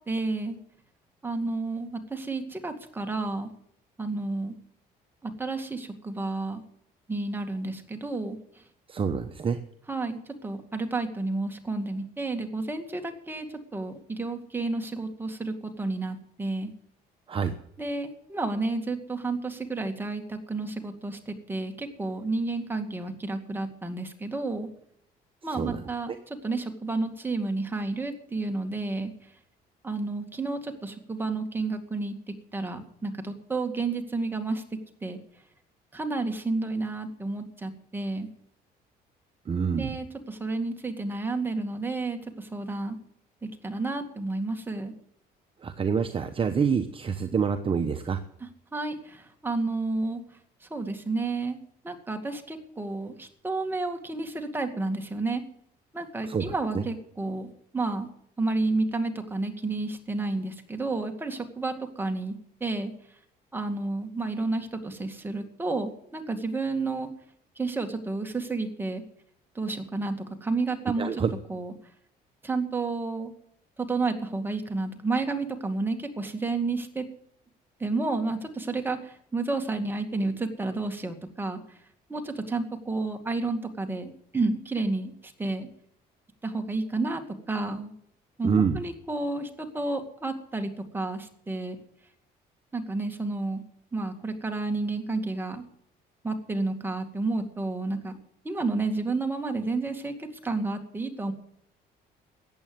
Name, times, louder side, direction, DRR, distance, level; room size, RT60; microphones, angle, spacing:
voice 1, 0.1-0.6 1.2-3.5 4.0-4.6 5.2-6.6 7.1-8.4 9.9-16.7 17.8-24.7 25.4-29.1 29.8-32.1 32.5-34.6 35.0-35.2 35.9-38.3 39.7-43.0 43.6-44.9 48.7-50.2 50.7-51.6 51.8-55.4 55.9-57.5 57.7-58.1 58.4-62.3 62.6-62.9 63.5-67.1 67.6-69.0 69.6-71.2 71.5-71.7 72.4-73.3 73.8-77.1 77.8-81.6 82.1-85.7 86.4-87.9 88.4-91.8 92.7-93.6 93.9-95.6 96.2-98.1 98.4-101.3, right 3 dB, 10° right, 4 dB, 2.1 m, -31 dB
voice 2, 8.9-9.6 17.3-17.5 25.5-26.2 39.5-39.9 45.6-48.2 56.2-56.8 71.0-71.3 88.4-88.8, right 6 dB, 30° right, 7 dB, 1.0 m, -27 dB
14.5 x 8.7 x 7.9 m, 0.69 s
cardioid pair, 110°, 17 cm